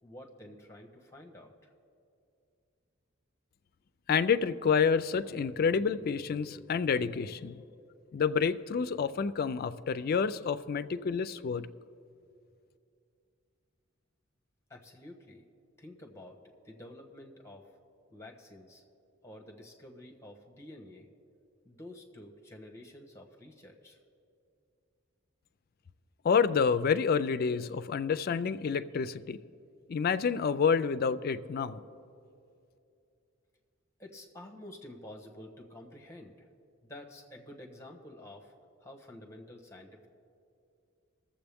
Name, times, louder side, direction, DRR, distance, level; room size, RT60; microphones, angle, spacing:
voice 1, 0.0-1.7 14.7-15.5 15.8-17.7 18.1-18.8 19.2-21.1 21.6-24.0 34.0-36.5 36.9-38.5 38.8-40.1, left 1 dB, 15° left, 1 dB, 1.2 m, -50 dB
voice 2, 4.1-7.6 8.1-11.7 26.2-29.4 29.9-31.8, left 6 dB, 50° left, 13 dB, 0.4 m, -28 dB
22.0 x 7.4 x 3.5 m, 2.5 s
head